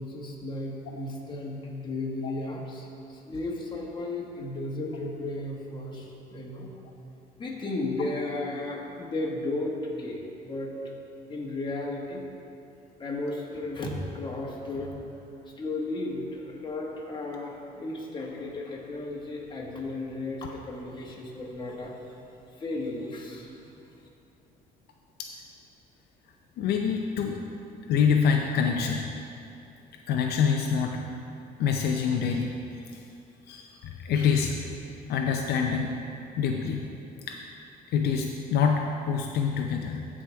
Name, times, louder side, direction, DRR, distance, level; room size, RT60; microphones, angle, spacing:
voice 1, 0.0-6.7 7.4-10.7 11.3-12.2 13.0-15.0 15.5-22.1 22.5-23.7, left 2 dB, 25° left, -2 dB, 1.7 m, -34 dB
voice 2, 26.6-27.4 27.9-29.1 30.1-31.0 31.6-32.5 32.9-33.0 33.5-34.6 35.1-36.0 36.4-36.9 37.3-37.4 37.9-40.1, left 6 dB, 70° left, 2 dB, 0.6 m, -26 dB
14.5 x 4.9 x 3.5 m, 2.7 s
cardioid pair, 110°, 17 cm